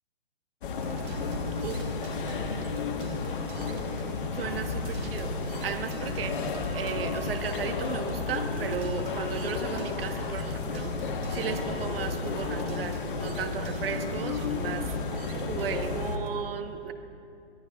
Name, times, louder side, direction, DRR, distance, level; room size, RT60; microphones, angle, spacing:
sound 1, 0.6-16.2, left 4 dB, 50° left, 1.4 m, -32 dB
sound 2, 0.8-16.3, right 4 dB, 20° right, 0.9 m, -46 dB
voice 1, 4.3-5.3 5.6-6.4 6.7-10.9 11.3-14.9 15.5-16.9, right 7 dB, 60° right, 7 dB, 1.2 m, -35 dB
23.5 x 16.5 x 2.4 m, 2.6 s
hypercardioid pair, 145°, 33 cm